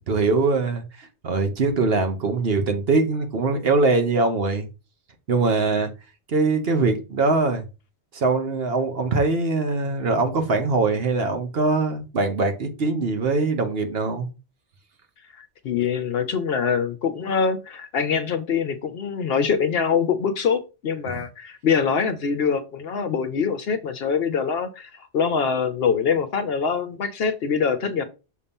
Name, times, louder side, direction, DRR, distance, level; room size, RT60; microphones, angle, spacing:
voice 1, 0.1-4.7 5.3-5.9 6.3-7.6 8.1-14.3, right 3 dB, 55° right, 1.1 m, -22 dB
voice 2, 15.4-28.1, left 6 dB, 60° left, 0.8 m, -24 dB
6.5 x 2.8 x 5.2 m
omnidirectional pair, 1.2 m